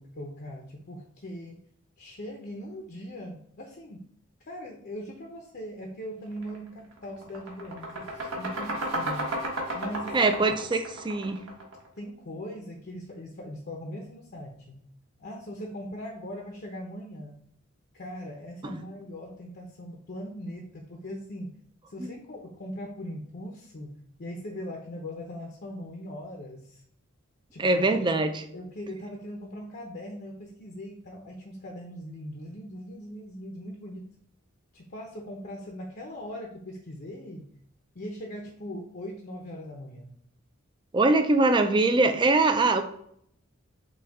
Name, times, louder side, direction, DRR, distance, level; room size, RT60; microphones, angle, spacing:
voice 1, 0.0-1.6 2.0-4.0 4.4-9.3 9.7-10.4 12.0-14.8 15.2-17.4 17.9-21.5 21.9-26.8 27.5-27.8 28.5-34.0 34.7-37.5 37.9-40.1, equal, 50° left, 1 dB, 0.7 m, -40 dB
sound 1, 6.4-6.6 6.9-11.9, right 1 dB, 90° right, 1.4 m, -33 dB
voice 2, 10.1-11.4 18.6-18.8 22.0-22.1 27.6-28.4 40.9-42.8, right 3 dB, 25° right, 8 dB, 0.4 m, -23 dB
6.1 x 2.3 x 3.5 m, 0.68 s
head